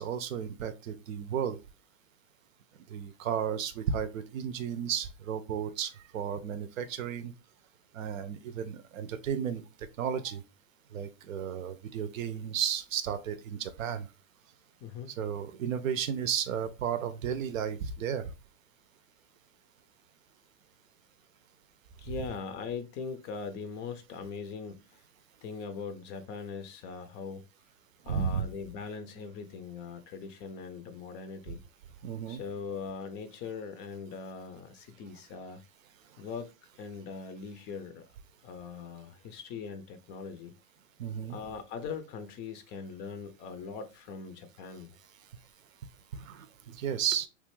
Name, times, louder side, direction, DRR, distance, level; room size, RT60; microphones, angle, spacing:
voice 1, 0.0-1.6 2.9-7.3 7.9-9.6 10.0-10.4 10.9-14.1 15.2-18.3 28.1-28.4 32.0-32.4 41.0-41.4 46.1-47.3, right 8 dB, 80° right, 0.6 m, -33 dB
voice 2, 22.0-25.0 25.4-27.4 28.0-31.6 32.3-35.6 36.2-36.5 36.8-38.0 38.4-40.5 41.3-45.0, left 5 dB, 30° left, 0.4 m, -41 dB
3.2 x 2.4 x 3.0 m
hypercardioid pair, 115°, 39 cm